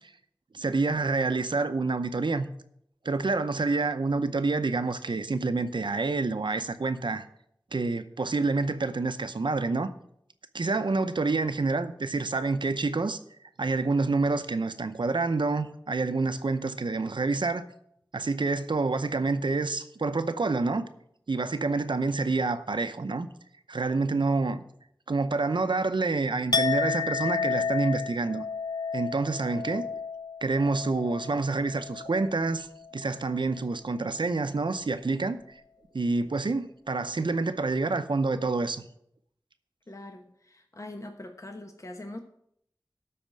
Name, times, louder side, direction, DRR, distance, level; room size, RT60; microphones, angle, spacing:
voice 1, 0.5-2.5 3.0-7.2 7.7-9.9 10.5-13.2 13.6-17.7 18.1-20.8 21.3-23.3 23.7-24.6 25.1-28.4 28.9-29.8 30.4-32.7 32.9-35.4 35.9-38.8, right 3 dB, 85° right, 0.7 m, -27 dB
Chink clink, 26.5-32.5 32.8-33.2, left 5 dB, 60° left, 0.5 m, -32 dB
voice 2, 39.9-42.2, left 1 dB, 40° left, 1.0 m, -42 dB
12.5 x 4.3 x 7.5 m
wide cardioid pair, 45°, 8 cm